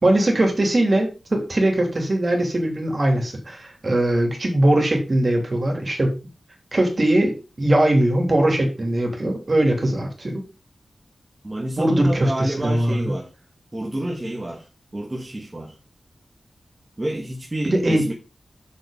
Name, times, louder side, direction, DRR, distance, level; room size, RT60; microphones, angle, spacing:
voice 1, 0.0-6.2 6.7-10.4 11.8-13.1 17.6-18.0, right 1 dB, 40° right, 3.2 m, -20 dB
voice 2, 11.4-13.3 13.7-15.8 17.0-18.1, right 1 dB, 25° right, 1.5 m, -29 dB
6.8 x 6.6 x 5.1 m
wide cardioid pair, 90°, 0 cm